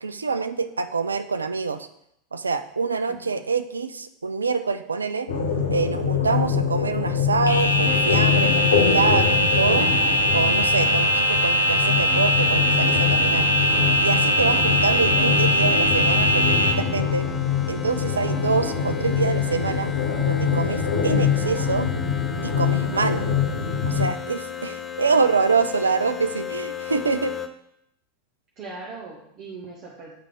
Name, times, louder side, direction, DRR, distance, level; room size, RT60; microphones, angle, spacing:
voice 1, 0.0-1.9 2.3-5.3 5.7-9.9 10.3-13.5 14.0-17.3 17.7-19.9 20.2-21.9 22.4-23.3 23.9-27.4, right 4 dB, 80° right, 10 dB, 0.4 m, -25 dB
voice 2, 3.1-3.4 28.6-30.1, right 3 dB, 40° right, -3 dB, 1.1 m, -39 dB
sound 1, 5.3-24.1, left 7 dB, 75° left, 0.9 m, -24 dB
sound 2, 7.5-16.7, equal, 90° left, 0.6 m, -21 dB
sound 3, 7.9-27.5, left 8 dB, 20° left, 0.6 m, -35 dB
8.5 x 3.3 x 3.7 m, 0.76 s
figure-of-eight pair, 85°, 0 cm